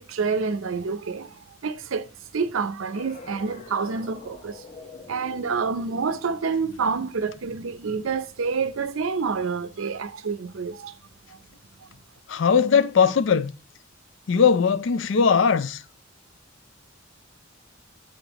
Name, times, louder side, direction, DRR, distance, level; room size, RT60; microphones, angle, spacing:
voice 1, 0.0-4.6 5.1-10.9, right 5 dB, 85° right, 0.6 m, -28 dB
sound 1, 2.9-8.2, left 3 dB, 35° left, 1.0 m, -46 dB
voice 2, 12.3-13.5 14.3-15.8, left 6 dB, 65° left, 0.4 m, -19 dB
7.7 x 5.2 x 3.0 m
head